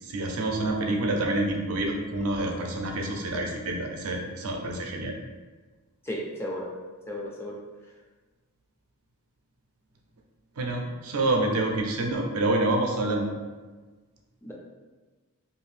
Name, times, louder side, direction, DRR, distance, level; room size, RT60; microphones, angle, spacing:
voice 1, 0.0-5.1 10.6-13.3, right 2 dB, 75° right, 1 dB, 0.5 m, -27 dB
voice 2, 6.0-6.7 7.1-7.6 14.4-14.5, left 1 dB, 10° left, -3 dB, 0.3 m, -34 dB
2.6 x 2.5 x 3.2 m, 1.3 s
head